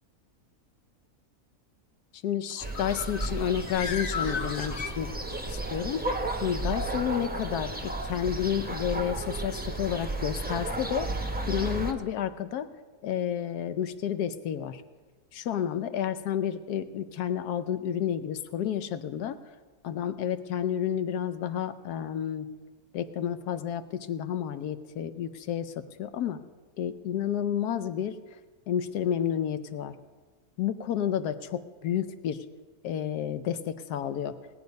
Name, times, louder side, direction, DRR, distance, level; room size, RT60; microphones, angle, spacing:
voice 1, 2.2-5.1 5.5-6.0 6.4-11.1 11.5-12.7 13.0-14.8 15.3-19.4 19.8-22.5 22.9-25.7 26.0-26.4 26.8-28.2 28.7-29.9 30.6-32.4 32.8-34.4, left 9 dB, 90° left, 12 dB, 1.2 m, -30 dB
Bird, 2.5-5.6, left 5 dB, 65° left, 1.2 m, -36 dB
sound 1, 2.6-11.9, right 2 dB, 10° right, 0.6 m, -33 dB
18.0 x 9.2 x 5.3 m, 1.4 s
omnidirectional pair, 1.6 m